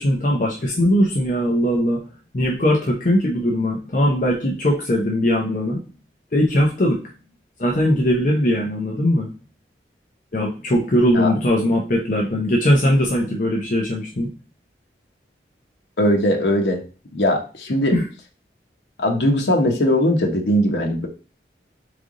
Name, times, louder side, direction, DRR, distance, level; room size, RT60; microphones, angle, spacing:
voice 1, 0.0-2.0 2.3-5.8 6.3-7.0 7.6-9.3 10.3-14.3 17.9-18.1, equal, 45° left, -1 dB, 0.7 m, -20 dB
voice 2, 16.0-16.8 17.1-17.9 19.0-21.1, equal, 85° left, 3 dB, 0.9 m, -19 dB
3.8 x 3.4 x 3.7 m, 0.36 s
head